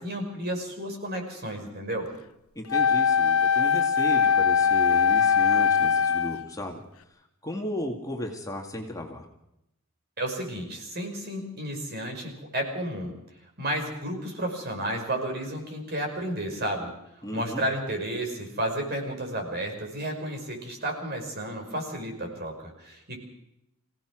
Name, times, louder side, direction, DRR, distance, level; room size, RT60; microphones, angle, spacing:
voice 1, 0.0-2.1 10.2-13.1 13.6-16.9 17.3-23.2, right 1 dB, 50° right, 3 dB, 5.6 m, -32 dB
voice 2, 2.6-6.8 7.4-9.3 17.2-17.6, equal, 15° left, 1 dB, 2.2 m, -35 dB
Wind instrument woodwind instrument, 2.7-6.5, left 6 dB, 75° left, 0.9 m, -21 dB
26.0 x 17.0 x 6.2 m, 0.86 s
head